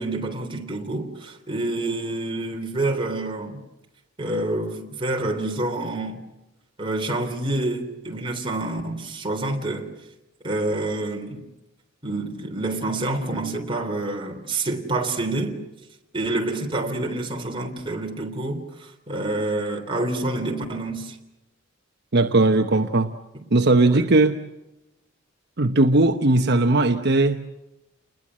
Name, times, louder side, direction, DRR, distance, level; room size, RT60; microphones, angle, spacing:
voice 1, 0.0-3.6 4.2-6.2 6.8-9.9 10.4-11.4 12.0-15.6 16.1-21.2 23.9-24.1, right 2 dB, 25° right, 3.6 m, -27 dB
voice 2, 22.1-23.1 23.5-24.4 25.6-27.4, right 2 dB, 55° right, 1.0 m, -18 dB
30.0 x 21.0 x 7.6 m
head